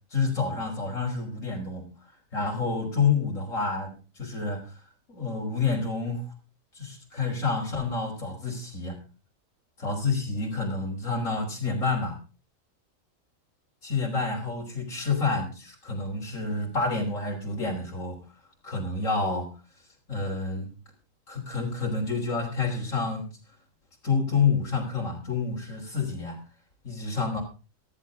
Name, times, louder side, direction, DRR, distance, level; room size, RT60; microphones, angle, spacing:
voice 1, 0.1-1.9 2.3-4.6 5.1-6.3 6.7-9.0 9.8-12.2 13.8-18.2 18.6-19.5 20.1-20.7 21.3-23.3 24.0-26.4 26.8-27.4, left 4 dB, 75° left, -1 dB, 3.9 m, -28 dB
15.0 x 14.5 x 3.6 m, 0.32 s
omnidirectional pair, 1.4 m